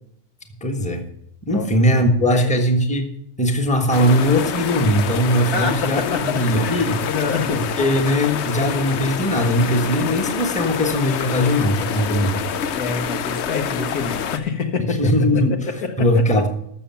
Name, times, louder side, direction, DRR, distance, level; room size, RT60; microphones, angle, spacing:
voice 1, 0.6-1.0 1.5-3.1 3.4-7.0 7.5-12.5 14.9-16.5, equal, 5° left, 4 dB, 1.3 m, -20 dB
voice 2, 1.5-2.0 2.3-2.5 5.5-7.6 12.7-15.1 15.8-16.2, left 4 dB, 80° left, 5 dB, 1.9 m, -27 dB
sound 1, 3.9-14.4, left 8 dB, 60° left, 0.8 m, -27 dB
12.5 x 7.1 x 5.8 m, 0.72 s
omnidirectional pair, 1.6 m